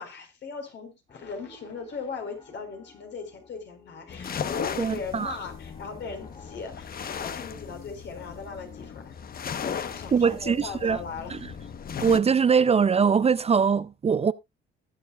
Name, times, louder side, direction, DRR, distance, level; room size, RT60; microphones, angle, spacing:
voice 1, 0.0-11.4, left 5 dB, 65° left, 4.2 m, -39 dB
Piano, 1.1-6.7, left 2 dB, 30° left, 3.7 m, -55 dB
sound 1, 4.1-12.2, left 7 dB, 50° left, 1.0 m, -36 dB
voice 2, 4.8-5.4 10.1-11.0 11.3-11.4 12.0-14.3, right 6 dB, 30° right, 0.5 m, -22 dB
19.5 x 7.1 x 2.3 m
cardioid pair, 90°, 20 cm